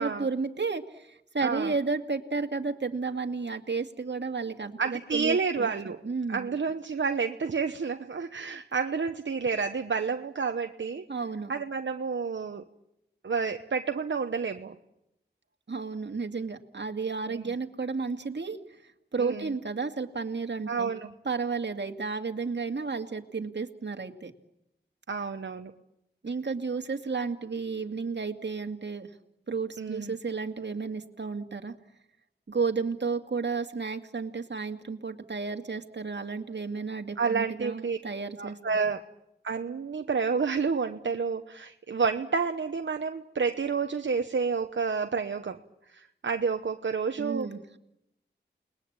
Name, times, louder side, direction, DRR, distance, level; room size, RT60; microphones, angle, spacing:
voice 1, 0.0-6.5 11.1-11.5 15.7-20.9 21.2-24.3 26.2-29.1 29.5-31.7 32.5-38.6 47.2-47.8, right 4 dB, 70° right, 5 dB, 2.3 m, -32 dB
voice 2, 1.4-1.7 4.8-6.0 6.3-11.1 11.5-12.6 13.2-14.8 17.3-17.5 19.2-19.5 20.7-21.1 25.1-25.7 29.8-30.1 37.2-38.0 38.4-39.0 39.4-45.6 45.9-47.5, right 5 dB, 85° right, 6 dB, 1.0 m, -30 dB
29.5 x 21.0 x 8.8 m, 0.86 s
cardioid pair, 40°, 19 cm